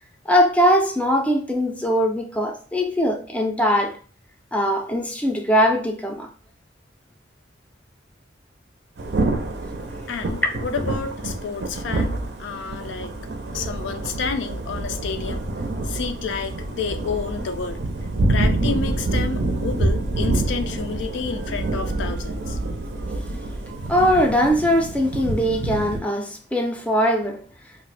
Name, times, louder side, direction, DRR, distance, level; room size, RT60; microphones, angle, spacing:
voice 1, 0.3-4.0 4.5-6.3 10.4-10.5 23.5-23.6 23.9-27.4, equal, 5° left, 0.4 m, -21 dB
Thunder / Rain, 9.0-26.0, right 2 dB, 60° right, 0.5 m, -27 dB
voice 2, 10.1-13.1 13.5-15.5 15.8-17.8 18.3-22.6, left 5 dB, 70° left, 0.4 m, -30 dB
2.5 x 2.1 x 3.9 m
head